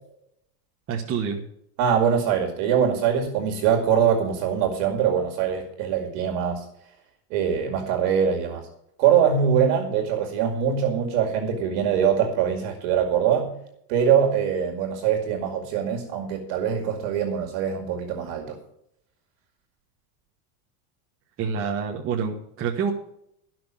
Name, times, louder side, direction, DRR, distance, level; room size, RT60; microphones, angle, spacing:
voice 1, 0.9-1.4 21.4-22.9, right 6 dB, 30° right, -1 dB, 1.2 m, -27 dB
voice 2, 1.8-6.7 7.3-8.7 9.0-13.5 13.9-18.6, right 8 dB, 60° right, 2 dB, 2.3 m, -23 dB
13.0 x 6.1 x 7.5 m, 0.76 s
supercardioid pair, 155°, 45 cm